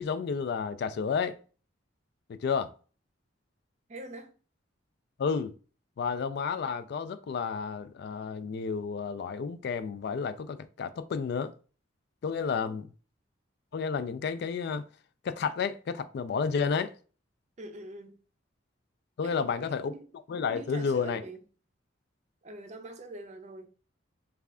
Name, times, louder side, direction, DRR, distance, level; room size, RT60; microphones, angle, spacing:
voice 1, 0.0-1.4 2.3-2.7 5.2-5.5 6.0-11.5 12.2-12.9 13.7-14.8 15.2-16.9 19.2-19.9 20.3-21.2, left 5 dB, 55° left, 0.3 m, -31 dB
voice 2, 3.9-4.3 12.6-12.7 17.6-18.2 19.2-20.1 20.5-21.4 22.4-23.7, right 1 dB, 35° right, 0.5 m, -44 dB
3.2 x 2.3 x 3.5 m
head